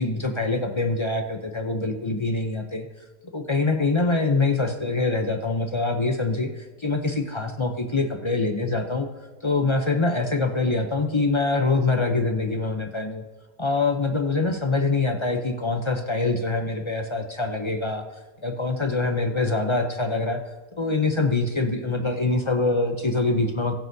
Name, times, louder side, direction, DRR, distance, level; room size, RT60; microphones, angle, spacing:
voice 1, 0.0-2.9 3.3-9.1 9.4-13.2 13.6-18.0 18.4-20.4 20.8-23.8, left 3 dB, 35° left, 4 dB, 0.4 m, -24 dB
20.5 x 7.8 x 2.7 m, 1.3 s
omnidirectional pair, 1.5 m